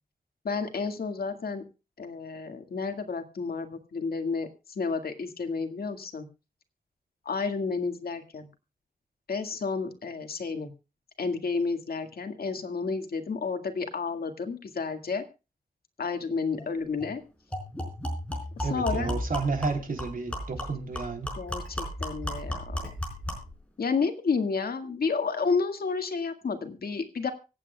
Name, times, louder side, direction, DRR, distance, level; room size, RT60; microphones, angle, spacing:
voice 1, 0.4-1.6 2.0-6.3 7.3-8.5 9.3-10.7 11.2-15.2 16.0-17.2 18.6-19.2 21.4-22.8 23.8-27.3, left 4 dB, 80° left, 6 dB, 1.9 m, -31 dB
sound 1, 16.6-16.7 17.0-17.1 17.5-23.5, left 1 dB, 10° left, 4.7 m, -34 dB
voice 2, 18.6-21.3, right 4 dB, 65° right, 4 dB, 3.3 m, -31 dB
25.0 x 8.7 x 2.3 m, 0.30 s
wide cardioid pair, 130°, 15 cm